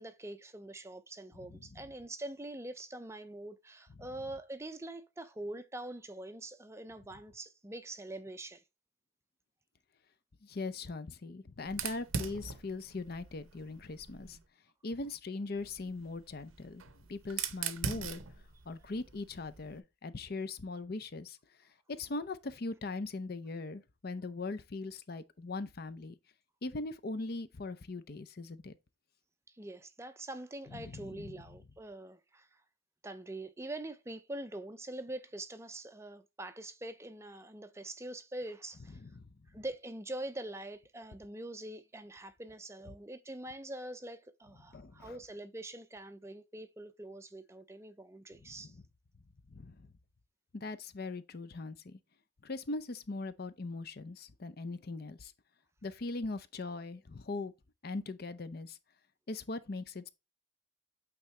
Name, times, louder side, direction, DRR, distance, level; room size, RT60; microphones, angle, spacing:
voice 1, 0.0-8.6 29.5-32.6 33.0-39.0 39.5-48.8, right 1 dB, 15° right, 0.5 m, -44 dB
voice 2, 10.4-14.4 14.8-16.8 17.1-18.2 18.7-21.4 21.9-26.1 26.6-28.7 30.9-31.3 39.0-39.2 44.7-45.2 48.4-48.5 49.5-49.9 50.5-52.0 52.4-55.3 55.8-57.5 57.8-58.8 59.3-60.1, left 3 dB, 50° left, 0.6 m, -40 dB
Fire, 11.7-14.4 15.6-19.8, right 6 dB, 80° right, 0.7 m, -41 dB
8.6 x 3.6 x 3.2 m
head